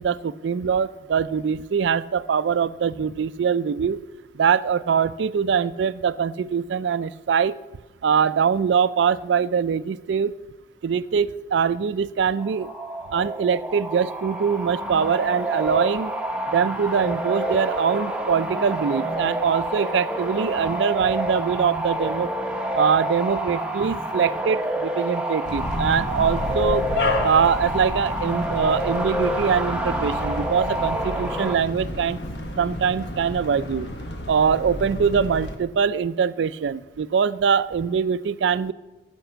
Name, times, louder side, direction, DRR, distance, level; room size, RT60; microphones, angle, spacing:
voice 1, 0.0-4.0 4.3-7.6 8.0-10.3 10.8-12.7 13.1-16.1 16.5-22.3 22.7-26.9 27.2-32.2 32.6-33.9 34.3-38.7, right 6 dB, 80° right, 16 dB, 0.4 m, -23 dB
sound 1, 12.4-31.6, right 1 dB, 5° right, 0.7 m, -28 dB
sound 2, 25.4-35.6, left 1 dB, 75° left, 1.1 m, -31 dB
11.5 x 5.3 x 6.8 m, 1.1 s
head